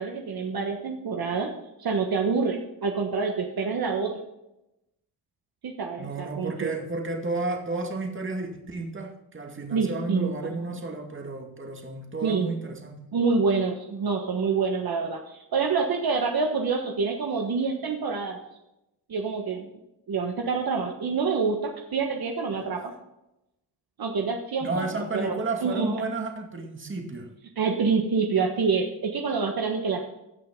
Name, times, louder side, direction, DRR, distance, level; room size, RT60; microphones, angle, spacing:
voice 1, 0.0-1.5 1.8-4.1 5.6-6.7 9.7-10.8 12.2-12.6 13.1-18.4 19.1-19.7 20.1-22.9 24.0-24.9 25.1-26.0 27.6-30.0, right 5 dB, 55° right, 2 dB, 1.4 m, -27 dB
voice 2, 6.0-13.0 24.6-27.3, right 3 dB, 30° right, 2 dB, 2.2 m, -32 dB
16.5 x 5.9 x 3.8 m, 0.89 s
cardioid pair, 90°, 43 cm